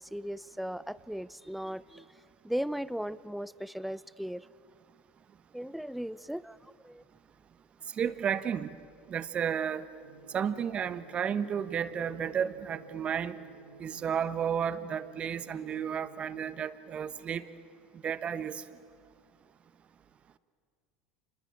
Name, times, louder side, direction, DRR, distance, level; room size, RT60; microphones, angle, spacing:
voice 1, 0.0-2.1 2.4-4.5 5.5-7.0, equal, ahead, 19 dB, 0.6 m, -37 dB
voice 2, 8.0-8.8 9.1-9.8 10.3-13.4 13.8-17.5 18.0-18.6, right 8 dB, 35° right, 13 dB, 1.2 m, -32 dB
sound 1, 10.0-16.5, right 4 dB, 85° right, 2.0 m, -54 dB
27.5 x 21.5 x 8.9 m, 2.3 s
hypercardioid pair, 85°, 3 cm